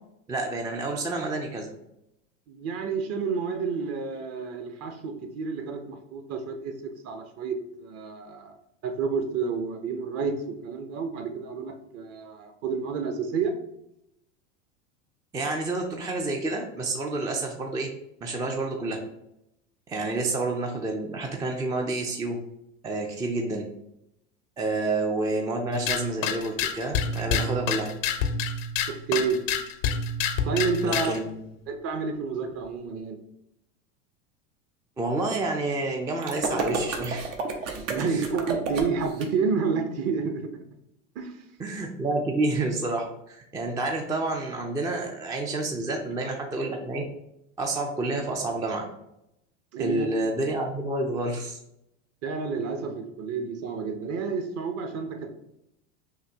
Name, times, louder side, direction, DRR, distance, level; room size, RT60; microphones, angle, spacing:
voice 1, 0.3-1.7 15.3-17.9 18.2-19.0 19.9-22.4 22.8-23.7 24.6-27.9 30.8-31.6 35.0-37.3 37.9-38.3 41.6-47.0 47.6-48.8 49.8-51.6, right 2 dB, 10° right, 2 dB, 0.3 m, -29 dB
voice 2, 2.5-8.6 8.8-13.5 20.2-20.3 28.9-29.4 30.4-31.1 31.7-33.2 37.7-40.6 41.2-41.3 49.7-50.1 52.2-55.3, right 5 dB, 40° right, 8 dB, 0.7 m, -30 dB
sound 1, 25.7-31.2, left 5 dB, 80° left, 0.6 m, -28 dB
sound 2, 36.2-39.3, right 3 dB, 75° right, 0.9 m, -30 dB
5.8 x 2.6 x 2.8 m, 0.82 s
hypercardioid pair, 100°, 38 cm